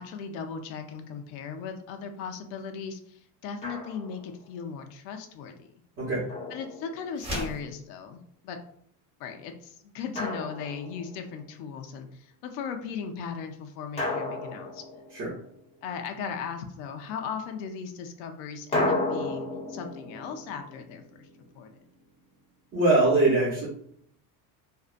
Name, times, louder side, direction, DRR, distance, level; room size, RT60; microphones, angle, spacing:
voice 1, 0.0-5.7 6.5-8.6 9.2-15.0 15.8-21.3 21.5-21.7, left 6 dB, 85° left, 5 dB, 0.5 m, -37 dB
Drum, 3.6-4.3 6.3-7.4 10.2-11.3 14.0-15.6 18.7-21.7, left 2 dB, 15° left, 0.4 m, -33 dB
sound 1, 7.1-7.7, equal, 15° right, 0.9 m, -33 dB
voice 2, 22.7-23.7, right 2 dB, 40° right, -8 dB, 0.8 m, -22 dB
2.6 x 2.1 x 2.4 m, 0.67 s
cardioid pair, 145°, 42 cm